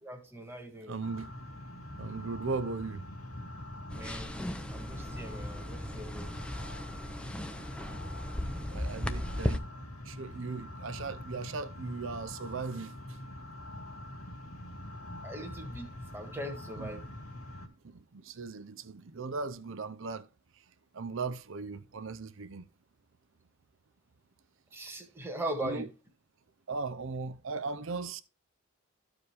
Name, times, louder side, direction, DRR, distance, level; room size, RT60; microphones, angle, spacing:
voice 1, 0.0-0.9 3.9-4.4 4.7-6.3 9.1-9.2 15.2-17.0 24.7-25.9, right 1 dB, 10° right, 1.6 m, -40 dB
voice 2, 0.9-1.3 2.0-3.0 7.2-7.4 8.4-9.7 10.0-12.9 16.8-16.9 17.8-20.3 20.9-22.7 25.6-25.9 26.7-28.2, right 4 dB, 60° right, 0.6 m, -38 dB
sound 1, 1.0-17.7, left 1 dB, 85° left, 2.3 m, -44 dB
sound 2, 3.9-9.6, left 1 dB, 5° left, 0.5 m, -37 dB
14.0 x 4.9 x 3.3 m
head